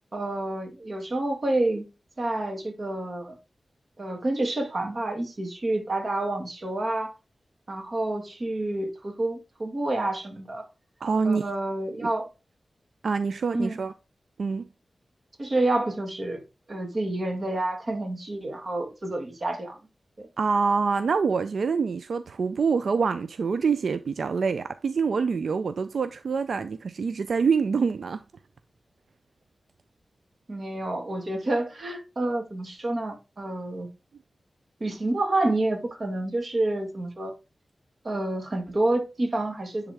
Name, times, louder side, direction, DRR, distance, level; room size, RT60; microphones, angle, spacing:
voice 1, 0.1-1.9 2.2-3.4 4.0-7.1 7.7-10.6 11.2-12.3 13.5-13.8 15.4-16.4 16.7-19.8 20.2-20.3 30.5-33.9 34.8-37.3 38.0-39.9, right 2 dB, 50° right, 1.9 m, -28 dB
voice 2, 11.0-11.4 12.0-12.1 13.0-13.9 14.4-14.7 20.4-28.2, right 5 dB, 85° right, 0.4 m, -25 dB
10.0 x 3.6 x 3.4 m
wide cardioid pair, 85°, 0 cm